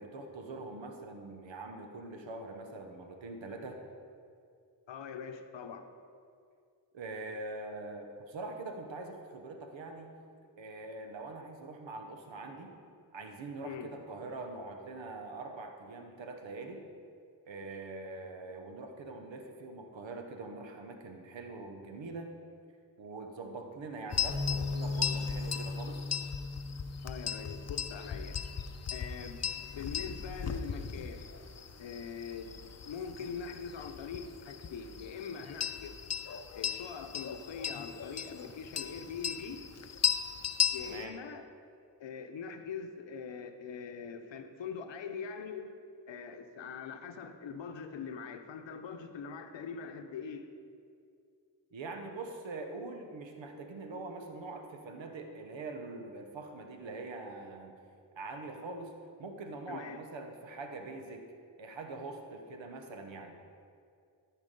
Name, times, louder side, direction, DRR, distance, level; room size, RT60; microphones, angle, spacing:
voice 1, 0.0-3.8 6.9-10.1 10.6-12.7 13.1-16.8 17.5-22.3 23.0-26.1 40.9-41.2 51.7-57.8 58.2-58.9 59.2-61.2 61.6-63.4, right 3 dB, 85° right, 4 dB, 1.0 m, -43 dB
voice 2, 4.9-5.9 13.6-13.9 27.0-28.4 28.9-31.3 31.8-32.5 32.8-36.0 36.5-39.6 40.7-41.4 42.0-45.7 46.1-50.5 59.7-60.0, left 6 dB, 80° left, 7 dB, 0.8 m, -42 dB
sound 1, 24.1-41.0, left 8 dB, 35° left, 0.6 m, -37 dB
Bass guitar, 24.3-30.5, left 2 dB, 15° left, 1.4 m, -39 dB
13.5 x 4.7 x 5.2 m, 2.4 s
cardioid pair, 40°, 44 cm